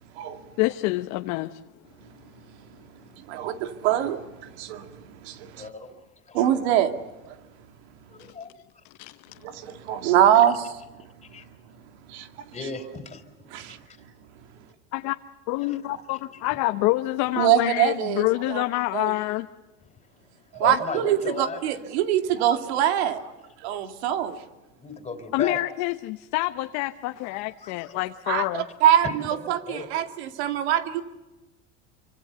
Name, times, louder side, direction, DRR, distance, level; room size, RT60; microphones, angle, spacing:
voice 1, 0.6-1.6 8.2-8.3 9.0-9.5 14.9-15.1 15.5-19.5 20.7-20.8 25.3-28.7, left 19 dB, 65° left, 8 dB, 1.0 m, -27 dB
voice 2, 3.2-5.7 6.3-7.0 7.3-7.4 9.4-10.8 12.1-12.3 13.5-13.6 17.4-18.6 18.9-19.1 20.5-23.3 23.6-24.4 28.3-31.0, right 10 dB, 80° right, 8 dB, 2.3 m, -24 dB
voice 3, 5.6-6.0 6.3-6.4 8.1-8.5 11.2-11.4 12.5-13.2 15.7-15.8 20.5-21.6 24.8-25.6 27.3-28.0 29.0-29.2 29.4-29.9, left 4 dB, 20° left, 8 dB, 3.8 m, -35 dB
27.0 x 25.0 x 6.9 m, 1.1 s
supercardioid pair, 125°, 32 cm